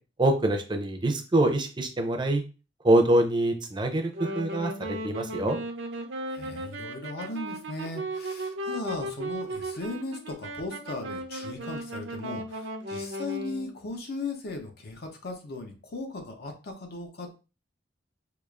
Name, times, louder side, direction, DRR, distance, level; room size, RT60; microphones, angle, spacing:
voice 1, 0.2-2.4 2.8-5.6, right 1 dB, 25° right, 4 dB, 0.5 m, -25 dB
Wind instrument woodwind instrument, 4.0-13.7, right 1 dB, 80° right, 0.6 m, -36 dB
voice 2, 6.3-17.4, left 2 dB, 55° left, 4 dB, 0.7 m, -37 dB
4.8 x 2.4 x 2.4 m, 0.33 s
head